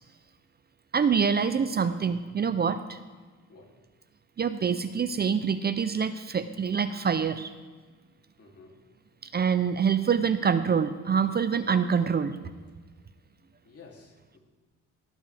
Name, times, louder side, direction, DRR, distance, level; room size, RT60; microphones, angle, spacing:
voice 1, 0.9-3.0 4.4-7.5 9.3-12.4, right 6 dB, 35° right, 11 dB, 0.6 m, -25 dB
voice 2, 8.4-8.8 13.6-14.4, left 4 dB, 50° left, -1 dB, 3.0 m, -52 dB
17.0 x 10.5 x 3.5 m, 1.4 s
cardioid pair, 90°, 30 cm